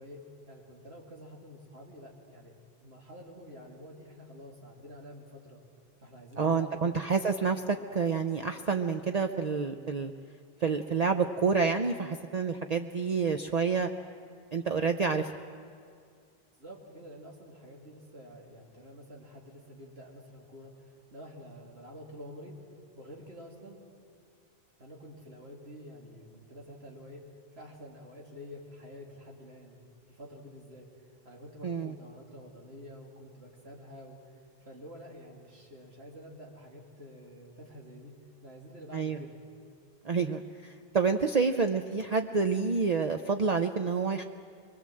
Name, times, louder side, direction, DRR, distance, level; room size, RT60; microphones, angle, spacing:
voice 1, 0.0-5.6 6.0-7.0 16.6-22.6 23.0-23.8 24.8-27.2 27.5-38.1 38.4-39.4, equal, 90° right, -2 dB, 3.1 m, -48 dB
voice 2, 6.4-10.1 10.6-13.9 14.5-15.4 31.6-31.9 38.9-39.2 40.0-44.2, right 5 dB, 45° right, 5 dB, 0.7 m, -28 dB
24.5 x 21.0 x 7.7 m, 2.2 s
omnidirectional pair, 1.0 m